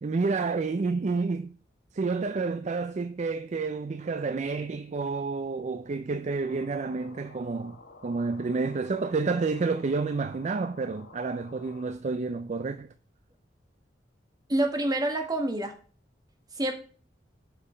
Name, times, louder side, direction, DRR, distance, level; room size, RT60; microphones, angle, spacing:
voice 1, 0.0-1.5 1.9-7.8 8.0-12.9, right 4 dB, 40° right, 0.4 m, -29 dB
sound 1, 6.4-11.9, left 3 dB, 80° left, 1.4 m, -51 dB
voice 2, 14.5-15.7 16.5-16.7, right 1 dB, 20° right, 1.5 m, -27 dB
8.1 x 5.7 x 5.0 m
head